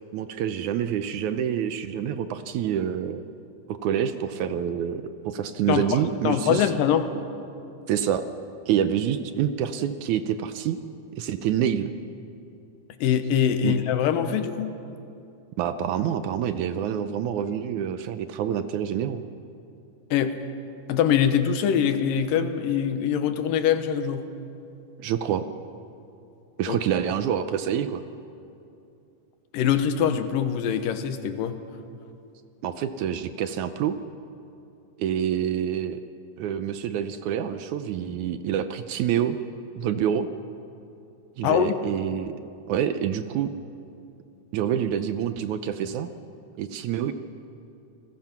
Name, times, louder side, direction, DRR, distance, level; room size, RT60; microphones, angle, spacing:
voice 1, 0.1-3.2 3.7-6.7 7.9-8.2 8.7-10.8 11.2-11.9 13.6-13.7 15.6-19.2 25.0-25.4 26.6-28.0 32.6-34.0 35.0-36.0 36.4-39.4 39.8-40.3 41.4-42.3 42.7-43.5 44.5-46.1 46.6-47.1, right 9 dB, 75° right, 11 dB, 2.0 m, -27 dB
voice 2, 5.7-7.1 13.0-14.7 20.1-20.4 20.9-24.3 26.7-26.8 29.5-31.6 41.4-41.8, left 8 dB, 90° left, 9 dB, 2.8 m, -23 dB
29.5 x 20.0 x 6.0 m, 2.7 s
omnidirectional pair, 3.9 m